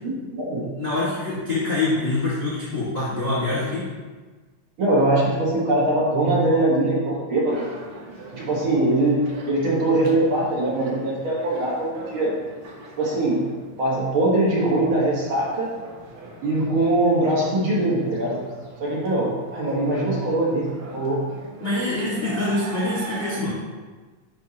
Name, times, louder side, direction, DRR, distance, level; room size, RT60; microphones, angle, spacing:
voice 1, 0.0-0.7 4.8-7.6 8.3-12.3 13.0-13.4 13.8-15.7 16.4-18.4 18.8-21.2, right 1 dB, 50° right, -5 dB, 2.0 m, -22 dB
voice 2, 0.8-3.9 21.6-23.6, left 2 dB, 30° left, -11 dB, 1.3 m, -25 dB
sound 1, 7.5-23.4, right 2 dB, 65° right, 1.4 m, -41 dB
10.0 x 3.5 x 2.9 m, 1.3 s
omnidirectional pair, 3.3 m